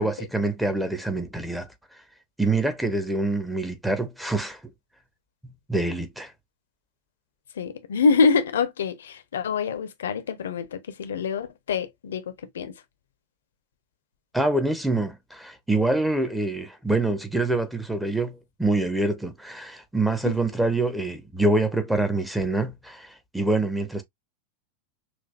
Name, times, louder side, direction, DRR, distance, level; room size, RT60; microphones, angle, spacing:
voice 1, 0.0-1.7 2.4-4.6 5.4-6.3 14.3-24.0, right 2 dB, 5° right, 1.0 m, -25 dB
voice 2, 7.6-12.7 20.2-20.4, left 5 dB, 65° left, 0.8 m, -25 dB
6.1 x 2.7 x 2.4 m
figure-of-eight pair, 90°, 0 cm